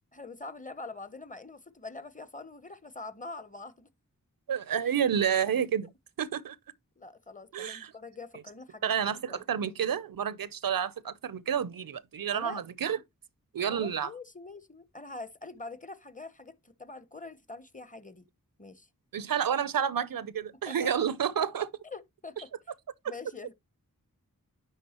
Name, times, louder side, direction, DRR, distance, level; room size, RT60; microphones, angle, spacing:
voice 1, 0.1-3.9 7.0-8.9 9.3-9.4 12.3-12.6 13.6-18.2 18.6-18.9 20.7-20.9 21.8-22.5 23.1-23.5, left 3 dB, 25° left, 0.8 m, -44 dB
voice 2, 4.5-5.9 6.2-6.6 7.5-7.9 8.8-13.0 13.5-14.1 19.1-21.7, right 8 dB, 80° right, 0.6 m, -29 dB
9.9 x 3.6 x 2.8 m
wide cardioid pair, 40°, 34 cm